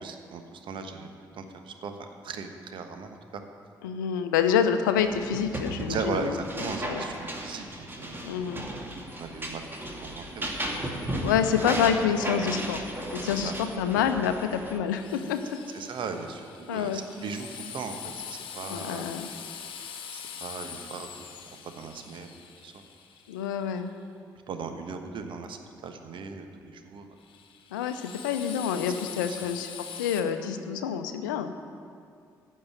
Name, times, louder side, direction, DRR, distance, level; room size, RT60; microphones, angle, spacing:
voice 1, 0.0-1.1 1.3-3.4 5.8-8.6 9.2-10.5 11.0-11.1 13.3-13.5 15.7-19.1 20.1-22.4 22.6-22.8 24.5-27.1 29.3-29.4, right 5 dB, 55° right, 6 dB, 1.2 m, -38 dB
voice 2, 3.8-7.0 8.2-8.6 11.2-12.8 13.1-15.5 16.7-17.0 18.7-19.3 23.3-23.9 27.7-29.7 30.0-31.5, left 8 dB, 75° left, 9 dB, 0.7 m, -27 dB
sound 1, 4.9-14.8, right 1 dB, 20° right, 2.3 m, -35 dB
Drill, 14.9-23.8 27.2-30.2, left 8 dB, 55° left, 1.2 m, -43 dB
15.0 x 5.5 x 9.3 m, 2.3 s
figure-of-eight pair, 40°, 10 cm